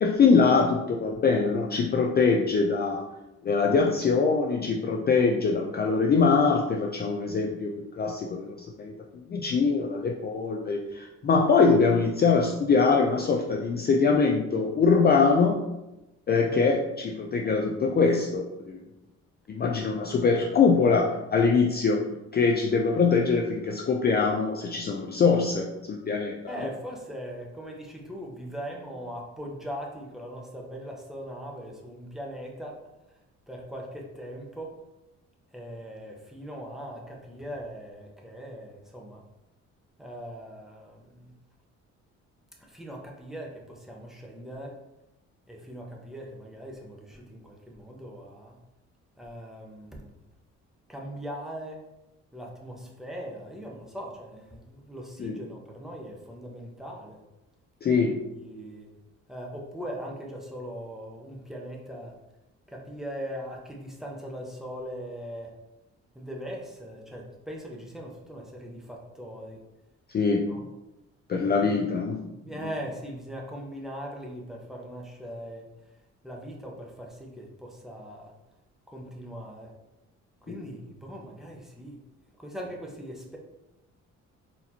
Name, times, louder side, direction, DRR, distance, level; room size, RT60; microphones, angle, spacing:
voice 1, 0.0-3.1 3.4-8.9 9.3-15.6 16.3-18.8 19.5-22.0 22.3-26.7 55.2-55.4 57.8-58.2 70.1-70.5 71.3-72.2 80.5-80.6, left 4 dB, 35° left, 1 dB, 0.4 m, -23 dB
voice 2, 26.5-32.8 33.5-34.7 35.5-39.2 40.0-41.3 42.6-44.8 45.5-48.6 49.2-50.1 50.9-51.8 52.3-57.2 58.0-58.9 59.3-62.2 62.7-65.5 66.1-69.6 70.5-70.6 71.3-71.9 72.3-75.7 76.2-78.3 78.9-79.7 80.4-82.0 82.4-83.4, equal, ahead, -1 dB, 0.8 m, -40 dB
4.0 x 2.9 x 2.8 m, 0.96 s
cardioid pair, 90°, 30 cm